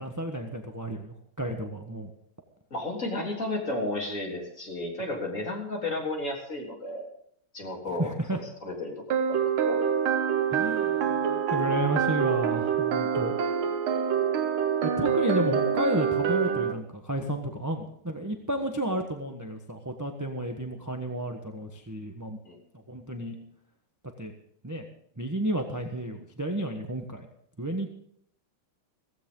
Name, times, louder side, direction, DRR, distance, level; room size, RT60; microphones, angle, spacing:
voice 1, 0.0-2.1 7.9-8.4 10.5-13.3 14.8-22.4 22.9-23.4 24.2-24.3 24.6-24.8 25.2-27.3 27.6-28.0, right 1 dB, 10° right, 3 dB, 0.9 m, -32 dB
voice 2, 2.7-7.1 7.5-8.1 8.6-9.8 13.9-14.0 22.5-22.6, left 2 dB, 35° left, -1 dB, 3.9 m, -33 dB
sound 1, 9.1-16.7, right 7 dB, 85° right, 2.0 m, -26 dB
16.0 x 15.5 x 3.9 m, 0.68 s
omnidirectional pair, 2.3 m